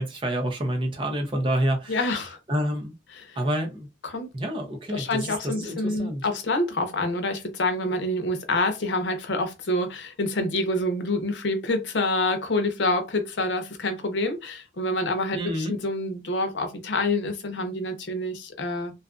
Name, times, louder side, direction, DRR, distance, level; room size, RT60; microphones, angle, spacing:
voice 1, 0.0-2.0 2.5-2.9 3.4-3.9 4.3-6.3 15.3-15.7, right 1 dB, 30° right, 0.6 m, -28 dB
voice 2, 1.9-2.4 3.1-3.4 4.0-4.3 4.9-18.9, left 2 dB, 85° left, 0.7 m, -27 dB
2.6 x 2.4 x 2.4 m
head